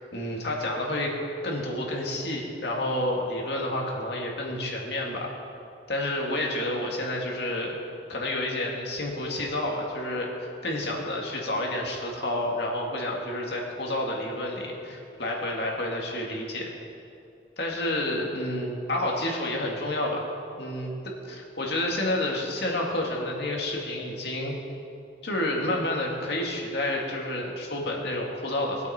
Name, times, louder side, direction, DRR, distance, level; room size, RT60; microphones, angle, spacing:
voice 1, 0.1-1.1 1.4-5.3 5.9-7.8 8.1-10.3 10.6-16.7 17.6-20.3 20.6-24.6 25.2-28.9, left 1 dB, 60° left, -1 dB, 2.1 m, -29 dB
20.5 x 8.2 x 4.4 m, 2.7 s
head